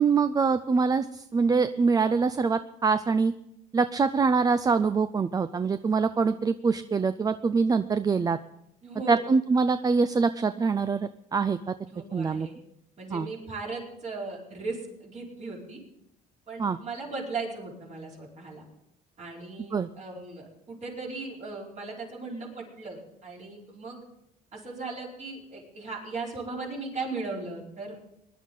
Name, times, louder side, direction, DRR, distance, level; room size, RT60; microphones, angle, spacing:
voice 1, 0.0-3.3 3.7-8.4 9.1-11.7 12.1-12.5 13.1-13.3 16.6-16.8 19.7-19.9, right 5 dB, 20° right, 12 dB, 0.4 m, -24 dB
voice 2, 8.8-9.2 11.9-12.5 13.0-15.8 16.5-18.6 19.2-24.0 24.5-27.9, right 3 dB, 45° right, -3 dB, 4.6 m, -37 dB
20.0 x 11.5 x 3.9 m, 0.80 s
cardioid pair, 110°, 17 cm